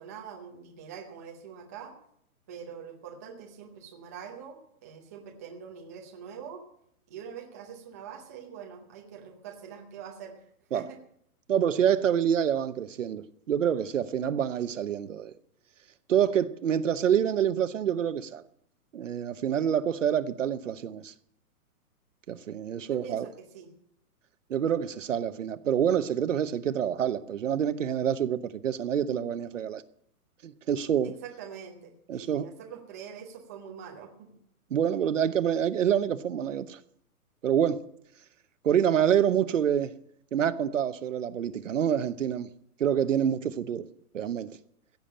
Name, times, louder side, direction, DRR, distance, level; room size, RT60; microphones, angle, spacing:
voice 1, 0.0-1.9 2.5-6.6 7.1-10.4 10.7-11.0 22.9-23.7 31.0-34.4, right 7 dB, 10° right, 0.7 m, -44 dB
voice 2, 11.5-15.3 16.1-18.4 18.9-21.1 22.3-23.3 24.5-29.8 30.4-31.1 32.1-32.5 34.7-36.8 37.4-37.8 38.6-39.9 40.3-42.5 42.8-43.9 44.1-44.5, right 9 dB, 55° right, 0.9 m, -27 dB
16.0 x 7.2 x 9.9 m
hypercardioid pair, 175°, 45 cm